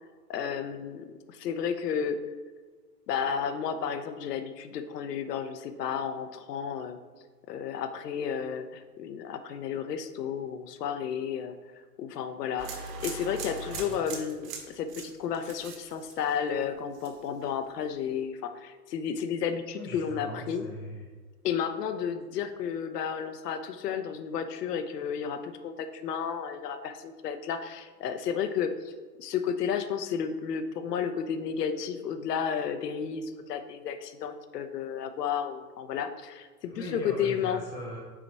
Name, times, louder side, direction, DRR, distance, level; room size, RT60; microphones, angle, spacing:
voice 1, 0.3-2.2 3.1-7.0 7.5-11.5 12.0-12.7 13.0-20.6 21.4-28.9 29.2-37.6, left 7 dB, 75° left, 8 dB, 0.9 m, -32 dB
sound 1, 12.6-16.6 16.9-17.4, right 4 dB, 50° right, 1.6 m, -40 dB
voice 2, 13.7-14.0 19.8-21.1 36.6-38.0, equal, 5° left, -4 dB, 0.3 m, -40 dB
6.0 x 4.0 x 4.7 m, 1.4 s
hypercardioid pair, 125°, 48 cm